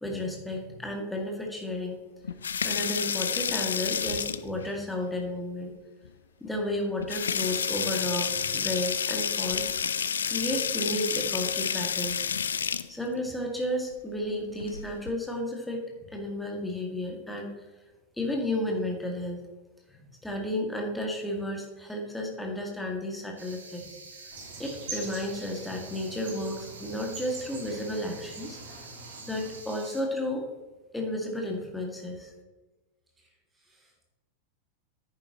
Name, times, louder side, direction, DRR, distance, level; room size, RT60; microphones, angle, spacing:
voice 1, 0.0-2.0 2.6-5.7 6.4-9.7 10.3-12.4 12.9-17.5 18.2-19.4 19.9-23.8 24.6-28.6 29.3-30.5 30.9-32.3, left 1 dB, 5° left, 1 dB, 2.1 m, -32 dB
sound 1, 2.2-4.7 6.0-6.1 6.5-6.6 7.0-12.9 14.5-15.1, left 7 dB, 70° left, 0.4 m, -30 dB
sound 2, 23.4-30.0, right 4 dB, 70° right, 1.5 m, -47 dB
sound 3, 24.3-29.6, right 3 dB, 50° right, 2.5 m, -44 dB
voice 2, 33.2-34.1, right 1 dB, 15° right, -1 dB, 2.9 m, -68 dB
10.5 x 9.6 x 3.0 m, 1.2 s
figure-of-eight pair, 90°, 0 cm